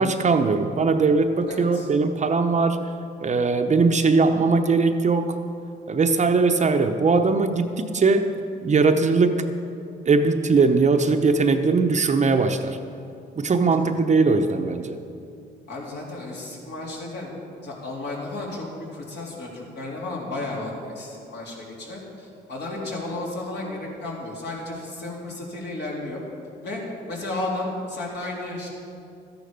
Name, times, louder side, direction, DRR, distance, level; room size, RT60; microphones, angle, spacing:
voice 1, 0.0-2.8 3.2-5.4 5.9-8.3 8.6-9.5 10.1-12.8 13.4-15.0, right 4 dB, 35° right, 7 dB, 0.8 m, -20 dB
voice 2, 1.5-1.9 13.8-14.0 15.7-17.3 17.6-18.6 18.9-26.2 26.6-26.8 27.1-28.7, left 2 dB, 60° left, -3 dB, 3.3 m, -33 dB
13.5 x 10.0 x 5.3 m, 2.5 s
cardioid pair, 90°, 20 cm